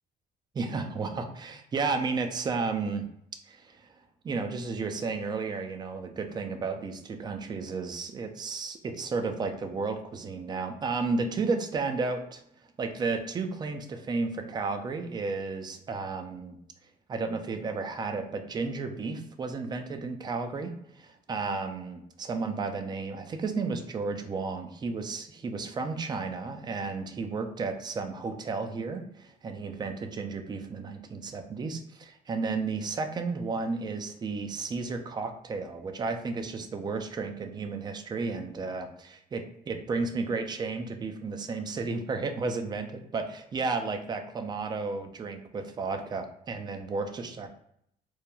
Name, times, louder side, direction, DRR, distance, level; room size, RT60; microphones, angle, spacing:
voice 1, 0.5-3.1 3.5-3.8 4.2-12.4 12.8-16.6 17.1-47.5, right 4 dB, 25° right, 6 dB, 0.3 m, -33 dB
3.0 x 2.1 x 2.3 m, 0.73 s
cardioid pair, 110°, 17 cm